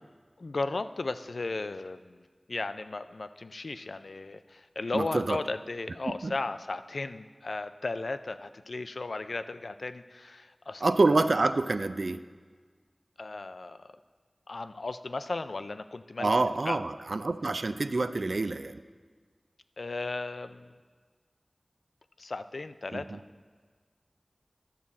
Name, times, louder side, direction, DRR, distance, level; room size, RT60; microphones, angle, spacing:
voice 1, 0.4-11.2 13.2-13.9 14.5-16.8 19.8-20.7 22.2-23.2, left 3 dB, 80° left, 11 dB, 0.4 m, -36 dB
voice 2, 4.9-5.4 6.2-6.3 10.8-12.2 16.2-18.8 22.9-23.0, right 3 dB, 75° right, 11 dB, 0.3 m, -27 dB
11.5 x 7.4 x 4.1 m, 1.5 s
wide cardioid pair, 65°, 0 cm